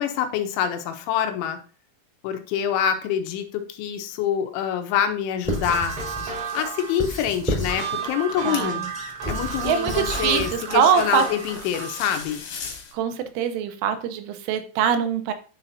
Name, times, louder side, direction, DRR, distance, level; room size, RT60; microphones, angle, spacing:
voice 1, 0.0-1.6 2.2-6.0 6.5-8.8 9.3-12.4, left 9 dB, 80° left, 6 dB, 3.0 m, -26 dB
Squeak / Writing, 5.4-6.4 7.0-7.9 8.4-10.6, left 1 dB, ahead, 2.9 m, -31 dB
sound 1, 5.5-12.1, right 6 dB, 70° right, 2.1 m, -33 dB
sound 2, 5.9-12.9, left 6 dB, 65° left, 3.0 m, -41 dB
voice 2, 8.4-8.9 9.6-11.2 12.9-15.3, right 7 dB, 85° right, 8 dB, 3.3 m, -23 dB
9.9 x 5.6 x 2.7 m, 0.38 s
omnidirectional pair, 5.6 m